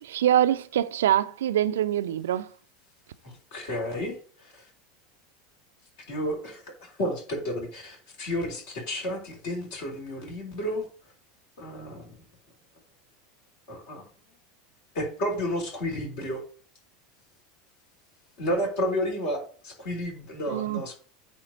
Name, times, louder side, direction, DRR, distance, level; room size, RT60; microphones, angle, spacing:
voice 1, 0.0-2.5 20.5-20.8, right 11 dB, 65° right, 0.5 m, -24 dB
voice 2, 3.5-4.6 6.1-10.9 11.6-12.1 13.7-14.0 14.9-16.4 18.4-20.9, equal, 55° left, 3.7 m, -31 dB
8.9 x 3.6 x 6.5 m
figure-of-eight pair, 80°, 0 cm